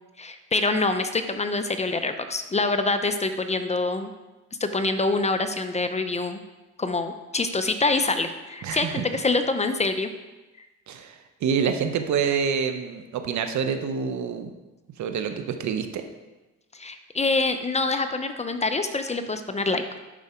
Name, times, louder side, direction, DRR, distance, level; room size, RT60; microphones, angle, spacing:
voice 1, 0.2-4.1 4.6-6.4 6.8-10.1 16.7-19.8, left 3 dB, 20° left, 8 dB, 0.7 m, -25 dB
voice 2, 8.6-9.0 10.9-11.1 11.4-14.5 15.0-16.0, right 6 dB, 70° right, 7 dB, 0.9 m, -27 dB
11.0 x 4.8 x 4.4 m, 1.1 s
cardioid pair, 90°, 30 cm